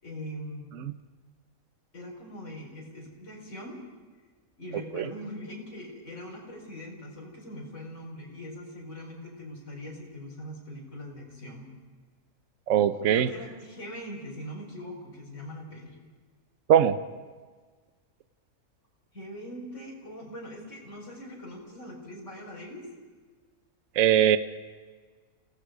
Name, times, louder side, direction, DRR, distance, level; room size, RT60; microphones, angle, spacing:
voice 1, 0.0-0.7 1.9-3.8 4.6-11.7 13.1-15.9 19.1-22.8, equal, 55° left, -3 dB, 5.1 m, -41 dB
voice 2, 12.7-13.3 16.7-17.0 24.0-24.4, right 10 dB, 65° right, 11 dB, 1.1 m, -21 dB
29.0 x 18.0 x 5.1 m, 1.5 s
omnidirectional pair, 1.5 m